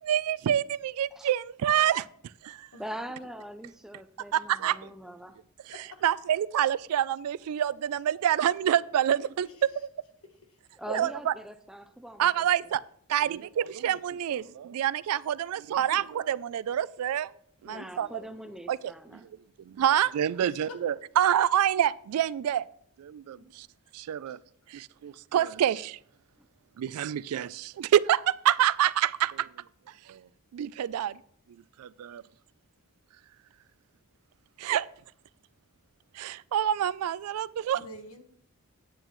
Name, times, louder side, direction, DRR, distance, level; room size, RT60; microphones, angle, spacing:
voice 1, 0.0-2.1 2.4-2.7 4.3-4.9 5.7-9.5 10.9-11.3 12.2-12.8 13.1-17.3 17.6-18.2 18.7-19.3 19.7-22.7 23.0-23.7 23.9-24.4 24.7-26.0 26.8-29.5 29.9-31.2 31.8-32.2 34.6-34.9 36.1-37.8, right 10 dB, 75° right, 18 dB, 0.3 m, -27 dB
voice 2, 2.8-5.4 10.8-12.5 17.6-19.3 26.4-26.5, equal, ahead, 9 dB, 0.4 m, -42 dB
voice 3, 5.7-6.0 9.4-9.5 17.7-18.4 20.7-20.8 24.3-24.4 37.7-38.2, left 2 dB, 65° left, 4 dB, 1.2 m, -46 dB
9.0 x 8.8 x 3.1 m, 0.65 s
head